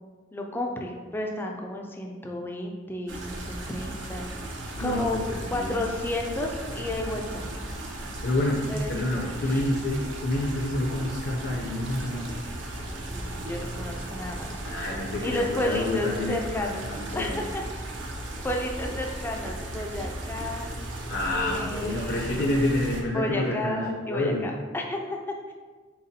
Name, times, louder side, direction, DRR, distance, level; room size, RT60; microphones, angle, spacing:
voice 1, 0.3-4.3 4.8-5.2 5.5-7.5 8.7-9.6 13.1-14.5 15.2-16.9 17.1-17.6 18.4-20.7 21.3-22.6 23.1-25.5, left 1 dB, 10° left, 1 dB, 0.3 m, -32 dB
sound 1, 3.1-23.0, right 1 dB, 65° right, 0.6 m, -36 dB
voice 2, 4.7-5.8 8.2-8.6 8.9-12.4 14.6-17.4 21.1-24.5, left 1 dB, 60° left, -2 dB, 0.5 m, -28 dB
4.0 x 3.8 x 2.7 m, 1.4 s
head